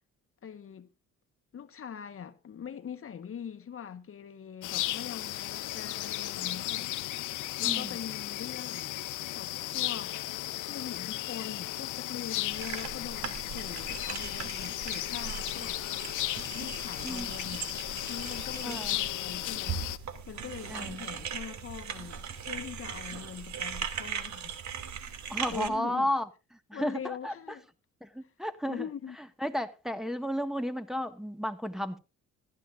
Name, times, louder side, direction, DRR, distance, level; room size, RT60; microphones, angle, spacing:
voice 1, 0.4-0.9 1.5-6.9 7.6-9.0 9.3-10.2 10.6-15.8 16.5-17.7 18.1-19.9 20.2-24.5 25.0-26.1 26.7-27.6 28.2-28.3 28.6-29.2, left 8 dB, 45° left, 1.3 m, -42 dB
sound 1, 4.6-20.0, left 15 dB, 85° left, 0.9 m, -35 dB
voice 2, 7.6-8.0 17.0-17.3 18.6-18.9 20.7-21.0 25.3-26.3 26.7-27.3 28.0-28.8 29.4-32.0, equal, ahead, 1.7 m, -33 dB
sound 2, 12.5-25.7, right 7 dB, 70° right, 2.6 m, -39 dB
16.0 x 13.5 x 2.5 m
cardioid pair, 90°, 30 cm